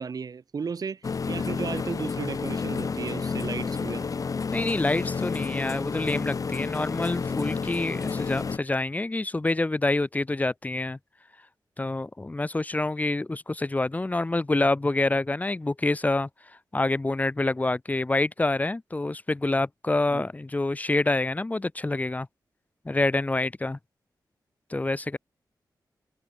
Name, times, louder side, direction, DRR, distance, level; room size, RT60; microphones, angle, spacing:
voice 1, 0.0-4.1 20.1-20.3, right 5 dB, 55° right, 5.9 m, -34 dB
sound 1, 1.0-8.6, left 5 dB, 50° left, 3.2 m, -30 dB
voice 2, 4.5-11.0 11.8-16.3 16.7-22.3 22.8-23.8 24.7-25.2, left 2 dB, 20° left, 7.7 m, -27 dB
wide cardioid pair, 145°, 8 cm